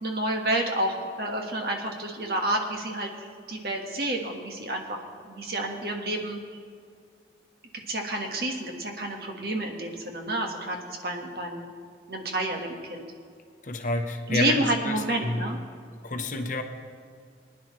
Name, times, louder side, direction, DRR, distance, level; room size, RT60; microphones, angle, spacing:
voice 1, 0.0-3.1 3.5-5.0 5.2-6.4 7.9-10.8 11.0-11.7 12.1-13.1 14.3-15.6, right 1 dB, 55° right, 2 dB, 1.4 m, -29 dB
voice 2, 13.6-15.4 16.0-16.6, left 2 dB, 45° left, 6 dB, 0.8 m, -29 dB
20.5 x 10.5 x 3.1 m, 2.2 s
head